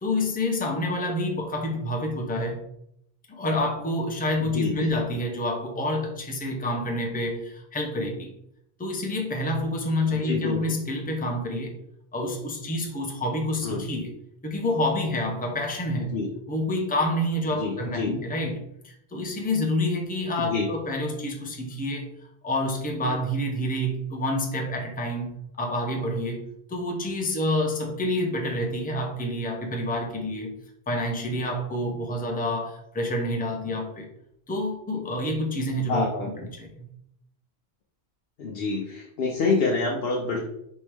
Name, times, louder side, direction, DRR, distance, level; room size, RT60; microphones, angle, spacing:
voice 1, 0.0-2.6 3.3-8.3 8.8-11.8 12.1-14.1 14.4-16.1 16.5-22.1 22.4-26.4 26.7-30.5 30.9-34.1 34.5-36.9, left 1 dB, 10° left, 1 dB, 0.5 m, -28 dB
voice 2, 4.4-4.9 10.2-10.6 13.6-13.9 16.0-16.3 17.6-18.1 20.4-20.7 35.9-36.5 38.4-40.4, left 3 dB, 65° left, -1 dB, 0.9 m, -27 dB
4.5 x 3.0 x 3.5 m, 0.76 s
omnidirectional pair, 1.1 m